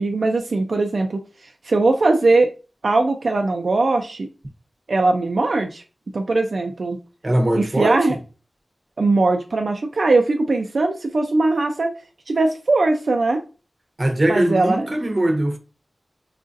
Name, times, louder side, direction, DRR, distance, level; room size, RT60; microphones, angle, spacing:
voice 1, 0.0-2.5 2.8-4.3 4.9-5.8 6.1-7.0 7.5-8.1 9.0-11.9 12.3-13.4 14.3-14.9, right 3 dB, 70° right, 0.3 m, -20 dB
voice 2, 7.2-8.0 14.0-15.6, right 1 dB, 35° right, 0.7 m, -20 dB
4.7 x 2.5 x 2.5 m
wide cardioid pair, 85°, 0 cm